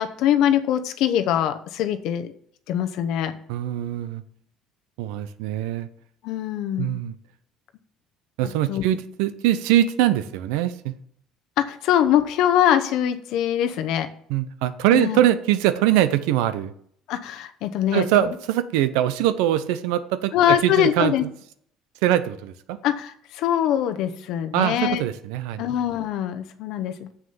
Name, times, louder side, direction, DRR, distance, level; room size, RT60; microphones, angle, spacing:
voice 1, 0.0-2.3 2.7-3.4 6.2-7.0 8.7-8.8 11.6-14.1 14.9-15.2 17.1-18.1 20.3-21.3 22.8-25.0 25.6-27.1, left 10 dB, 70° left, 9 dB, 0.8 m, -23 dB
voice 2, 3.5-4.2 5.0-5.9 6.8-7.1 8.4-10.9 14.3-16.7 17.9-21.1 22.0-22.8 24.5-25.7, right 12 dB, 90° right, 13 dB, 0.7 m, -22 dB
7.4 x 6.4 x 5.7 m, 0.65 s
cardioid pair, 115°, 0 cm